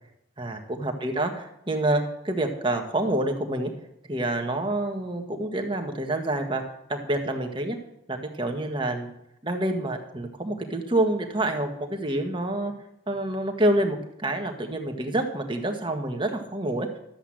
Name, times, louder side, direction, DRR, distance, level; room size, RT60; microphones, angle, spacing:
voice 1, 0.4-3.7 4.1-6.6 6.9-7.8 8.1-9.1 9.4-12.7 13.1-17.0, right 1 dB, 25° right, 3 dB, 1.5 m, -27 dB
13.0 x 8.0 x 7.6 m, 0.79 s
head